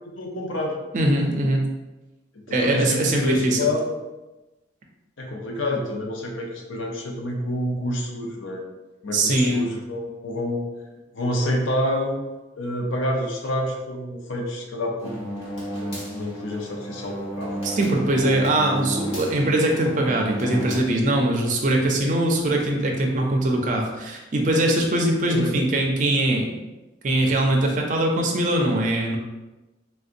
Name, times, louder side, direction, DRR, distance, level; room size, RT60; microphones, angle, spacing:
voice 1, 0.2-0.8 2.3-4.0 5.2-8.6 9.0-10.7 11.1-12.2 12.6-17.6 25.3-25.5, left 1 dB, 80° left, 1 dB, 0.6 m, -28 dB
voice 2, 0.9-1.7 2.5-3.6 9.1-9.7 17.6-26.6 27.0-29.2, right 1 dB, 40° right, 1 dB, 0.4 m, -22 dB
sound 1, 15.0-20.8, right 1 dB, 30° left, 1.1 m, -32 dB
3.3 x 2.7 x 2.5 m, 1.1 s
head